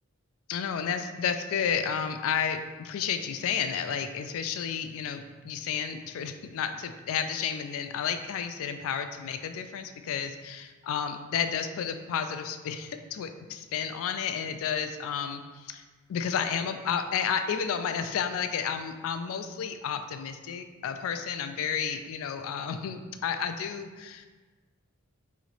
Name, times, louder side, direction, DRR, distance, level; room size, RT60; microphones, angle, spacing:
voice 1, 0.5-15.8 16.1-24.3, left 7 dB, 65° left, 8 dB, 0.3 m, -31 dB
3.1 x 2.9 x 3.9 m, 1.3 s
head